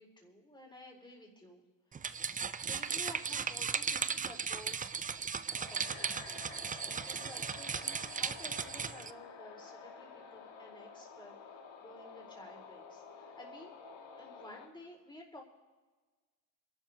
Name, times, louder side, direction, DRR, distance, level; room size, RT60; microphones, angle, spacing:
voice 1, 0.0-1.6 1.9-4.8 5.5-13.7 14.2-15.4, left 1 dB, 10° left, -1 dB, 4.4 m, -53 dB
sound 1, 1.9-9.1, right 6 dB, 20° right, 0.3 m, -37 dB
sound 2, 5.5-14.7, left 5 dB, 80° left, 1.6 m, -51 dB
27.5 x 12.0 x 2.8 m, 1.3 s
cardioid pair, 90°, 44 cm